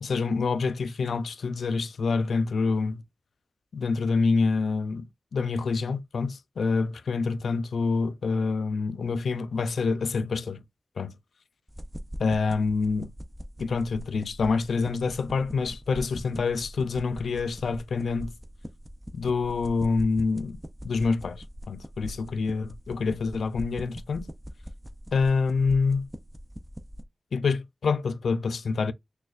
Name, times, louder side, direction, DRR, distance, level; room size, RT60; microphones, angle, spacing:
voice 1, 0.0-3.0 3.7-10.6 11.0-11.1 12.2-13.1 13.6-18.3 19.1-24.3 25.1-26.1 27.3-28.9, left 4 dB, 90° left, 0.4 m, -27 dB
sound 1, 11.7-27.0, equal, 10° right, 0.4 m, -42 dB
6.4 x 2.3 x 2.4 m
wide cardioid pair, 140°, 0 cm